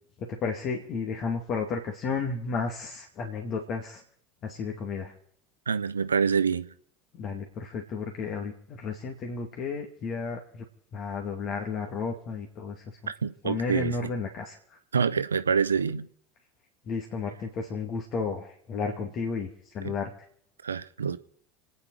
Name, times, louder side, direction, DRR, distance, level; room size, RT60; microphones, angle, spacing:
voice 1, 0.2-4.0 4.4-5.1 7.2-10.6 10.9-13.1 13.4-14.8 16.9-20.1, left 4 dB, 40° left, 2.4 m, -33 dB
voice 2, 5.7-6.7 13.2-14.1 14.9-16.1 19.8-19.9 20.6-21.2, right 6 dB, 80° right, 0.8 m, -26 dB
29.5 x 9.9 x 4.8 m
figure-of-eight pair, 75°, 0 cm